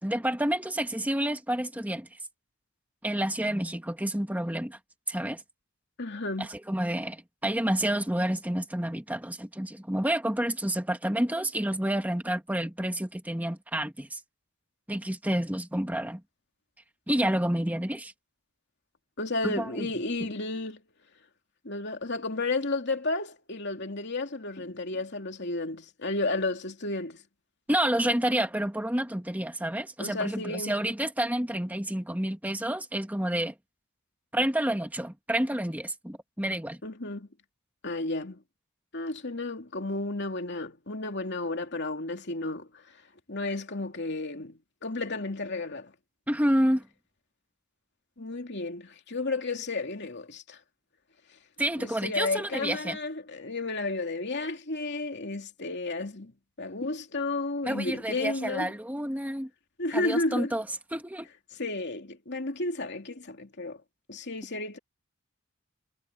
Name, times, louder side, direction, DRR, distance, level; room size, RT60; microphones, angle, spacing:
voice 1, 0.0-2.2 3.0-4.8 5.1-5.4 6.4-14.2 14.9-16.2 17.1-18.1 19.4-19.9 27.7-33.5 34.3-36.8 46.3-46.8 51.6-53.0 57.6-59.5 59.9-60.6 60.9-61.3, right 1 dB, 5° right, 2.0 m, -29 dB
voice 2, 6.0-6.5 19.2-20.8 21.6-27.2 30.0-30.8 36.8-37.3 37.8-38.4 38.9-42.8 43.3-45.9 48.2-50.6 51.8-56.3 56.6-58.7 59.8-60.5 61.5-63.8 64.1-64.8, left 2 dB, 50° left, 2.8 m, -32 dB
head